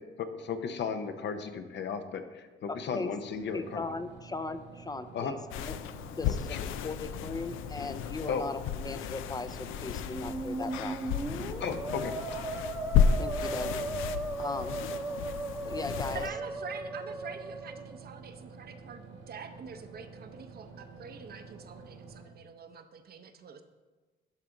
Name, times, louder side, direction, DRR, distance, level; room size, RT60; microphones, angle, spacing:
voice 1, 0.2-3.8 5.1-5.3 6.5-6.6 8.3-8.5 11.6-12.1, left 6 dB, 65° left, 8 dB, 0.8 m, -35 dB
voice 2, 2.7-3.1 3.5-5.8 6.1-11.0 13.2-13.7 14.4-14.8 15.6-16.3, left 3 dB, 20° left, 11 dB, 0.5 m, -38 dB
sound 1, 3.3-22.2, right 4 dB, 75° right, 1.6 m, -50 dB
sound 2, 5.5-16.3, left 7 dB, 90° left, 0.4 m, -33 dB
Musical instrument, 10.0-18.0, right 2 dB, 10° right, 0.8 m, -37 dB
voice 3, 16.1-23.6, right 6 dB, 50° right, 8 dB, 0.7 m, -46 dB
11.5 x 4.7 x 3.8 m, 1.3 s
cardioid pair, 90°, 20 cm